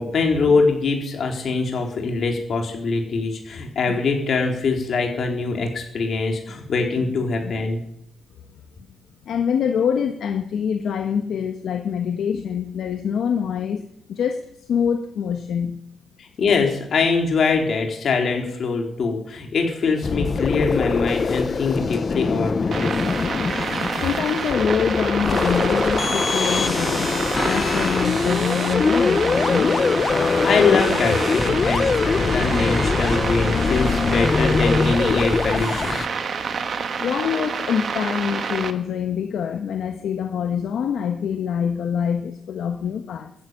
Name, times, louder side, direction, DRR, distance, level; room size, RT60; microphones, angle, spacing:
voice 1, 0.0-7.8 16.4-22.9 30.4-36.0, left 4 dB, 45° left, 2 dB, 3.9 m, -23 dB
voice 2, 9.2-15.8 24.0-27.2 27.4-29.8 37.0-43.3, left 7 dB, 60° left, 5 dB, 1.4 m, -25 dB
sound 1, 20.0-36.1, left 4 dB, 30° left, 0.7 m, -22 dB
sound 2, 22.7-38.7, right 5 dB, 40° right, 1.4 m, -28 dB
14.5 x 10.5 x 9.1 m, 0.77 s
cardioid pair, 165°, 0 cm